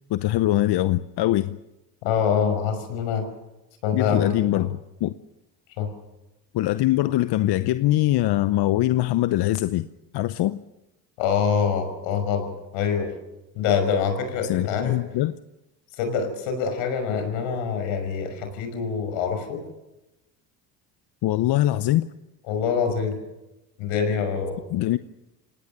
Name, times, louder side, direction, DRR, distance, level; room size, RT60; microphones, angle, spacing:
voice 1, 0.1-1.6 3.9-5.1 6.5-9.9 10.1-10.6 14.4-15.3 21.2-22.1 24.7-25.0, left 15 dB, 55° left, 0.8 m, -22 dB
voice 2, 2.0-3.3 3.8-4.6 5.8-5.9 11.2-13.1 13.5-15.0 15.9-19.6 22.5-23.2 23.8-24.6, left 6 dB, 75° left, 5.9 m, -25 dB
26.5 x 18.5 x 6.7 m
hypercardioid pair, 70°, 49 cm